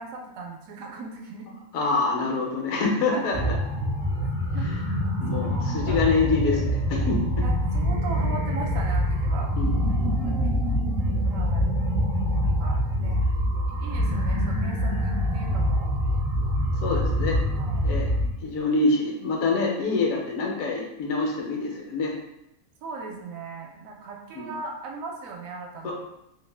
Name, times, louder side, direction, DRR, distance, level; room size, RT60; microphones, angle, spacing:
voice 1, 0.0-1.5 2.2-2.3 3.1-3.4 4.5-4.7 5.3-6.1 7.4-9.5 10.2-10.5 11.2-11.7 12.4-13.2 13.8-15.9 17.4-17.9 22.8-25.9, right 3 dB, 75° right, 0 dB, 0.9 m, -38 dB
voice 2, 1.7-3.5 4.6-4.7 5.2-7.2 9.6-10.0 16.8-17.4 17.8-18.1 18.4-22.1 24.3-24.5 25.8-25.9, left 3 dB, 75° left, -1 dB, 1.0 m, -26 dB
sound 1, 3.3-18.3, equal, 40° right, 0.4 m, -25 dB
2.6 x 2.1 x 3.2 m, 0.83 s
omnidirectional pair, 1.5 m